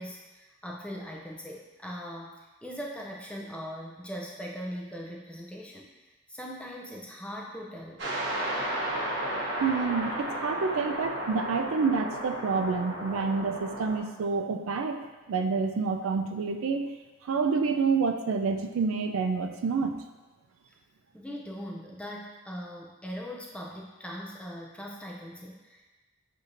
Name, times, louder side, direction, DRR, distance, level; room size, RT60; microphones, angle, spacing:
voice 1, 0.0-2.3 2.6-5.9 6.3-8.0 21.1-26.0, equal, 5° left, -2 dB, 0.4 m, -40 dB
sound 1, 8.0-14.0, right 1 dB, 55° right, 0.8 m, -33 dB
voice 2, 9.6-15.0 15.3-16.9 17.2-20.0, right 4 dB, 80° right, 5 dB, 0.4 m, -28 dB
6.5 x 2.7 x 2.5 m, 1.2 s
head